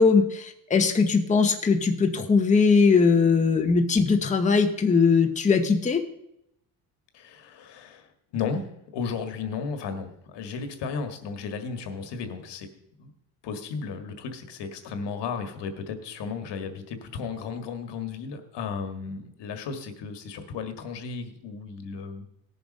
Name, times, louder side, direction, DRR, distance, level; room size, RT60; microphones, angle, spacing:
voice 1, 0.0-6.0, left 5 dB, 15° left, 4 dB, 0.9 m, -20 dB
voice 2, 7.1-12.7 13.0-13.1 13.4-22.2, left 5 dB, 70° left, 7 dB, 1.8 m, -34 dB
17.5 x 7.1 x 5.4 m, 0.78 s
cardioid pair, 140°, 43 cm